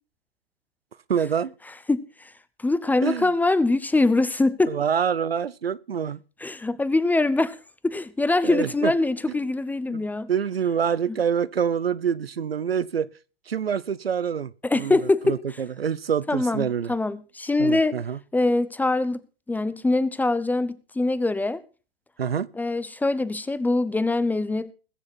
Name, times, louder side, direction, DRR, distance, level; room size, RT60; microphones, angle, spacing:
voice 1, 1.1-1.5 3.0-3.3 4.7-6.2 8.4-8.9 9.9-13.1 13.5-15.0 15.2-16.9 17.6-18.2 22.2-22.5, right 7 dB, 85° right, 0.7 m, -26 dB
voice 2, 1.9-2.3 2.6-4.8 6.4-7.6 7.8-10.3 14.6-15.4 16.3-18.0 18.3-19.2 19.5-21.6 22.5-24.7, left 2 dB, 5° left, 0.7 m, -23 dB
21.0 x 7.2 x 4.4 m
figure-of-eight pair, 105°, 29 cm